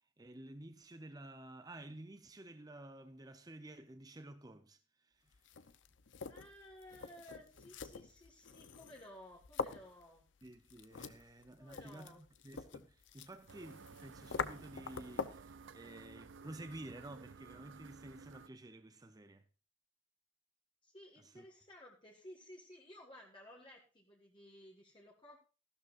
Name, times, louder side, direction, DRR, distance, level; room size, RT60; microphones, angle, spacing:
voice 1, 0.2-5.3 10.4-19.4 21.2-21.4, right 1 dB, 20° right, 0.7 m, -52 dB
sound 1, 5.3-15.5, left 5 dB, 80° left, 0.8 m, -46 dB
voice 2, 6.3-10.3 11.6-12.3 20.8-25.4, left 1 dB, 25° left, 1.7 m, -56 dB
sound 2, 13.5-18.5, right 5 dB, 85° right, 0.5 m, -55 dB
14.5 x 12.0 x 2.5 m
head